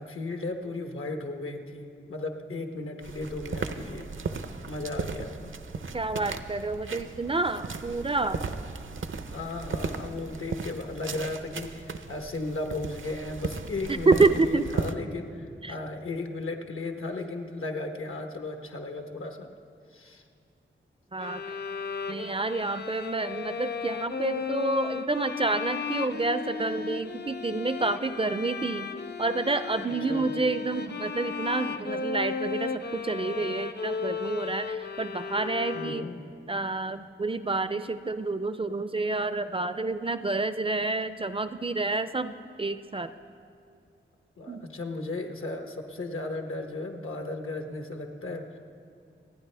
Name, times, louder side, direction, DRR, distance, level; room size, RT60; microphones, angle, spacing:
voice 1, 0.0-4.1 4.6-5.5 9.3-19.5 19.9-20.3 21.2-21.3 29.8-30.4 35.7-36.2 44.4-48.6, left 2 dB, 80° left, 4 dB, 1.1 m, -35 dB
sound 1, 3.0-14.9, right 4 dB, 70° right, 0.6 m, -36 dB
voice 2, 5.9-8.4 13.9-14.7 15.6-15.7 21.1-21.6 22.1-28.9 29.2-36.1 36.5-43.1 44.5-44.7, right 3 dB, 25° right, 12 dB, 0.4 m, -28 dB
sound 2, 21.2-36.3, left 5 dB, 55° left, 0.5 m, -35 dB
27.0 x 9.5 x 3.4 m, 2.4 s
wide cardioid pair, 80°, 21 cm